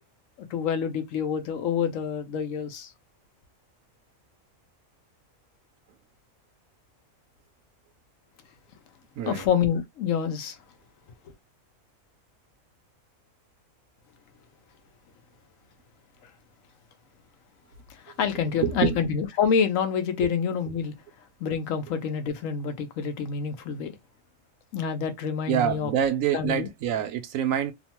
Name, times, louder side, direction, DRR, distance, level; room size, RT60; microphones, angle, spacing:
voice 1, 0.4-2.9 9.3-10.6 16.2-16.3 17.9-20.9 21.4-23.9 24.7-25.9 26.3-26.7, left 7 dB, 75° left, 1.0 m, -27 dB
voice 2, 18.6-19.0 25.5-27.7, right 9 dB, 80° right, 1.0 m, -26 dB
2.9 x 2.1 x 2.8 m
omnidirectional pair, 1.4 m